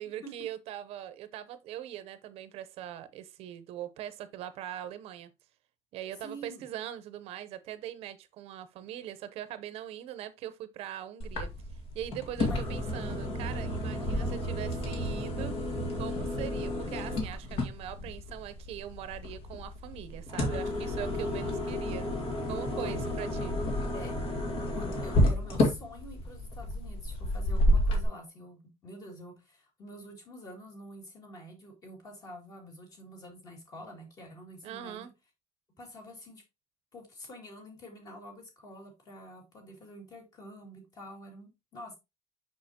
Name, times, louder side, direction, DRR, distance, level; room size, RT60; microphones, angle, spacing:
voice 1, 0.0-5.3 5.9-11.5 11.9-15.5 16.0-22.1 22.5-23.6 34.6-35.1, right 11 dB, 60° right, 0.7 m, -41 dB
voice 2, 6.2-6.6 12.4-12.7 14.0-14.3 21.1-21.4 22.7-23.1 23.9-24.2 24.7-35.1 35.8-36.4 36.9-42.0, equal, 30° left, 2.5 m, -47 dB
sound 1, 11.2-28.0, left 1 dB, 55° left, 1.9 m, -31 dB
6.5 x 6.0 x 2.8 m
cardioid pair, 175°, 12 cm